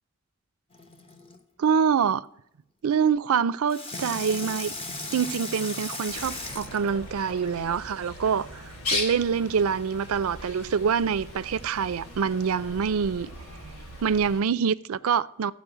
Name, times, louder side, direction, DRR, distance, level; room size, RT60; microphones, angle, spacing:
Water tap faucet / Sink (filling or washing), 0.7-1.4 3.7-7.6 8.3-8.4, left 2 dB, 25° left, 1.0 m, -37 dB
voice 1, 1.6-2.3 2.8-4.7 5.1-8.6 8.9-13.3 14.0-15.5, right 6 dB, 75° right, 0.4 m, -25 dB
Bird, 6.1-14.4, left 2 dB, 85° left, 2.5 m, -38 dB
14.5 x 5.1 x 9.0 m
head